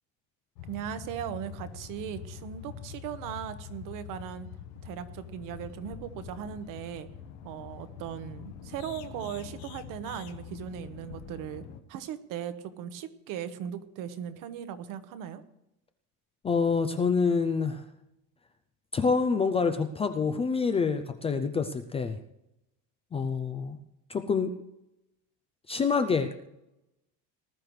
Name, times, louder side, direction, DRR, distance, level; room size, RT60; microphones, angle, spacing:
sound 1, 0.6-11.8, left 8 dB, 75° left, 1.4 m, -44 dB
voice 1, 0.6-4.5 4.8-7.1 7.4-11.6 11.9-15.4, right 9 dB, 55° right, 11 dB, 1.2 m, -38 dB
voice 2, 16.4-17.8 18.9-22.2 23.1-23.8 24.1-24.5 25.7-26.5, left 5 dB, 15° left, 8 dB, 0.4 m, -27 dB
19.5 x 12.5 x 3.2 m, 0.87 s
cardioid pair, 170°, 37 cm